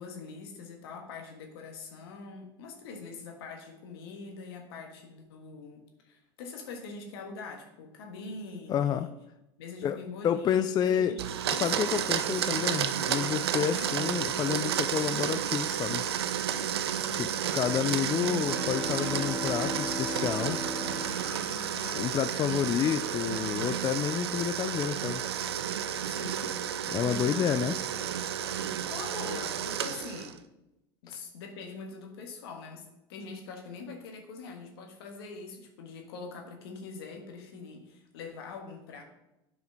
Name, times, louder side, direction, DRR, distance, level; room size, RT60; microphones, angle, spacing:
voice 1, 0.0-9.1 9.6-11.7 12.3-12.6 13.6-13.9 17.0-17.5 21.5-22.1 26.0-26.6 27.0-27.4 28.9-30.4 31.0-39.0, left 4 dB, 75° left, 1.6 m, -43 dB
voice 2, 8.7-9.1 9.8-11.2 11.6-16.0 17.1-20.6 22.0-25.2 26.9-27.8 31.1-31.2, left 9 dB, 30° left, 0.3 m, -29 dB
Domestic sounds home sounds, 11.2-30.4, right 9 dB, 85° right, 0.5 m, -31 dB
sound 1, 18.0-22.1, left 2 dB, ahead, 1.6 m, -38 dB
sound 2, 18.4-24.1, left 2 dB, 55° left, 2.5 m, -48 dB
9.3 x 5.0 x 3.9 m
hypercardioid pair, 90°, 13 cm